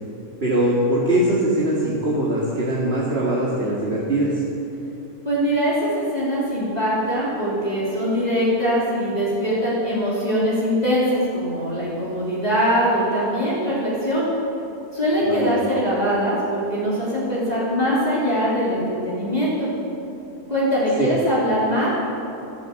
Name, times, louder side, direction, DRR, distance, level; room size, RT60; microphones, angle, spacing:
voice 1, 0.4-4.4 15.2-15.5 21.0-21.1, right 1 dB, 45° right, -5 dB, 2.5 m, -21 dB
voice 2, 5.3-14.2 14.9-19.7 20.5-21.9, equal, 25° left, -8 dB, 3.5 m, -22 dB
13.5 x 13.5 x 7.9 m, 2.8 s
omnidirectional pair, 1.5 m